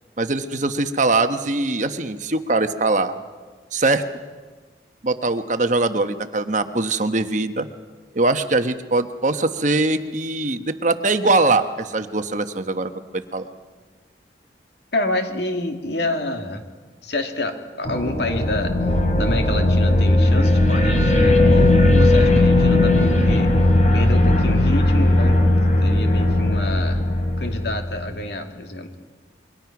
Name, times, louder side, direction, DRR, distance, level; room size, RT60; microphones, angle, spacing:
voice 1, 0.2-3.1 3.7-4.0 5.0-7.7 8.1-13.5, right 2 dB, 45° right, 9 dB, 1.1 m, -22 dB
voice 2, 14.9-16.6 17.0-23.5 23.9-25.4 25.8-27.0 27.4-28.9, left 2 dB, 70° left, 4 dB, 2.5 m, -28 dB
sound 1, 17.8-28.0, left 1 dB, 40° left, 3.2 m, -17 dB
27.5 x 22.5 x 6.0 m, 1.4 s
head